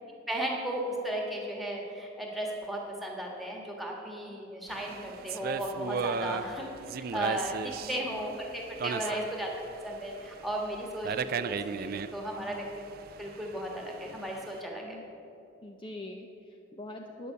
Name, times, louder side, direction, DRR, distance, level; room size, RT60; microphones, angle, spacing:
voice 1, 0.3-6.7 7.1-9.5 9.8-12.6 13.2-15.0, right 1 dB, ahead, -1 dB, 1.5 m, -35 dB
sound 1, 4.7-14.6, right 6 dB, 50° right, 0.3 m, -37 dB
voice 2, 6.2-6.6 7.8-8.2 8.8-9.2 12.4-12.7 14.8-15.0 15.6-17.3, left 2 dB, 25° left, 3 dB, 0.5 m, -44 dB
9.9 x 6.9 x 8.0 m, 2.8 s
head